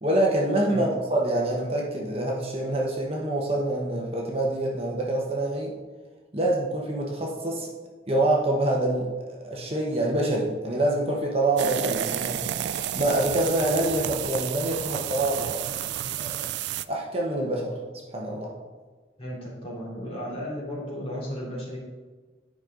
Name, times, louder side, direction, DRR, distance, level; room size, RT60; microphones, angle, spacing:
voice 1, 0.0-5.7 6.3-7.7 8.1-12.4 12.9-15.7 16.2-16.5 16.9-17.7 18.1-18.5, right 1 dB, 35° right, -2 dB, 1.1 m, -26 dB
sound 1, 11.6-16.9, right 10 dB, 70° right, 0.3 m, -30 dB
voice 2, 19.2-21.8, equal, 30° left, -6 dB, 2.7 m, -34 dB
10.5 x 5.3 x 3.9 m, 1.4 s
head